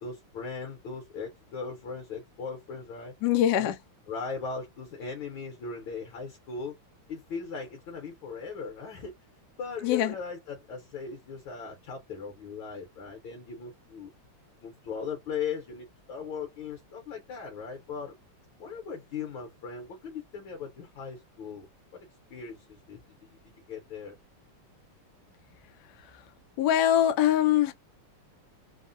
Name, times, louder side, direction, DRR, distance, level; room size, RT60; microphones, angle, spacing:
voice 1, 0.0-3.1 3.6-3.7 4.1-6.7 7.1-9.1 9.6-14.1 14.6-18.1 18.6-21.7 22.3-24.1, left 5 dB, 70° left, 1.4 m, -38 dB
voice 2, 3.2-3.8 9.8-10.1 26.1-26.2 26.6-27.7, left 11 dB, 90° left, 0.9 m, -23 dB
3.6 x 2.0 x 2.4 m
omnidirectional pair, 2.4 m